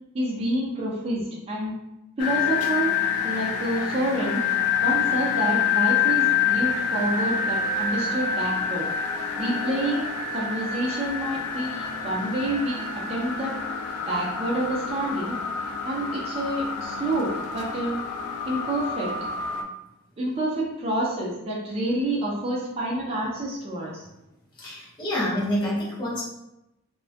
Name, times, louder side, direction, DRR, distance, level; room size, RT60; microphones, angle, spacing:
voice 1, 0.1-1.7 2.2-2.9 3.2-4.4 4.8-8.9 9.4-13.6 14.1-15.4 15.8-18.0 18.5-19.2 20.2-24.1, right 1 dB, 25° right, -4 dB, 0.4 m, -28 dB
sound 1, 2.2-19.6, left 7 dB, 80° left, 0.3 m, -27 dB
voice 2, 24.6-26.2, equal, 20° left, -6 dB, 0.6 m, -27 dB
2.3 x 2.2 x 2.4 m, 0.90 s
head